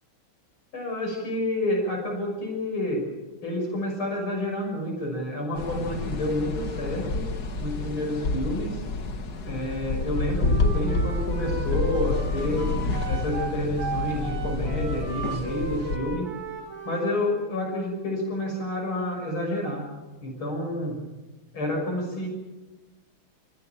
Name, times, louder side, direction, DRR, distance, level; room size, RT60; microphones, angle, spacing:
voice 1, 0.7-3.0 3.4-7.3 7.6-8.8 9.4-12.7 13.1-16.3 16.9-19.8 20.2-21.0 21.5-22.3, left 1 dB, 65° left, 0 dB, 7.1 m, -29 dB
sound 1, 5.6-16.0, left 3 dB, 50° left, 2.1 m, -29 dB
Wind instrument woodwind instrument, 10.4-17.2, right 4 dB, 85° right, 6.7 m, -36 dB
28.5 x 16.0 x 9.1 m, 1.1 s
omnidirectional pair, 2.4 m